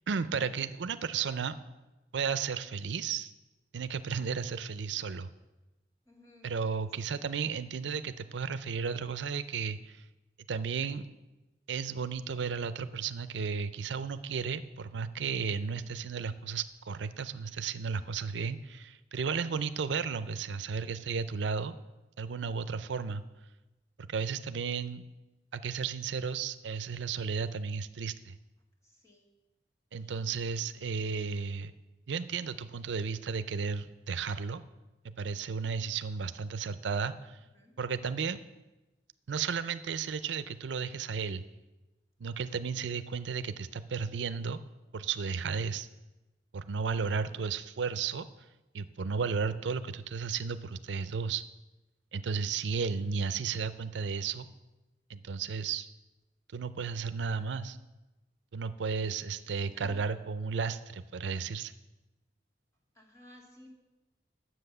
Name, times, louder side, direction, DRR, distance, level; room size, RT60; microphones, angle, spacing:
voice 1, 0.1-1.6 2.1-3.3 3.7-5.3 6.4-10.0 10.5-11.1 11.7-21.7 22.2-23.2 24.0-25.0 25.5-28.4 29.9-31.7 32.1-34.6 35.2-37.4 37.8-38.4 39.3-41.4 42.2-44.6 44.9-45.9 46.5-48.3 48.7-51.4 52.1-54.5 55.1-55.9 56.5-57.8 58.5-61.7, right 5 dB, 80° right, 13 dB, 0.5 m, -34 dB
voice 2, 6.1-6.5 7.0-7.1 28.8-29.3 30.0-30.3 30.7-31.4 37.5-37.7 47.0-47.4 52.7-53.2 59.1-60.0 62.9-63.7, left 1 dB, 15° left, -1 dB, 2.0 m, -58 dB
10.0 x 7.7 x 6.7 m, 1.1 s
head